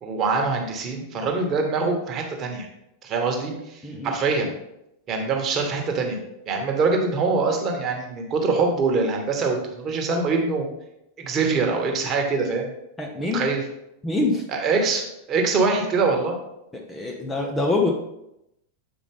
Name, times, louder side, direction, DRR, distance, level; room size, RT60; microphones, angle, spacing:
voice 1, 0.0-2.7 3.0-4.5 5.1-10.7 11.2-12.7 13.3-13.6 14.5-16.4, right 4 dB, 30° right, 2 dB, 1.4 m, -24 dB
voice 2, 3.8-4.1 13.0-13.5 14.0-14.5 16.7-17.9, left 3 dB, 10° left, 0 dB, 0.8 m, -25 dB
7.9 x 4.8 x 3.6 m, 0.84 s
figure-of-eight pair, 90°, 0 cm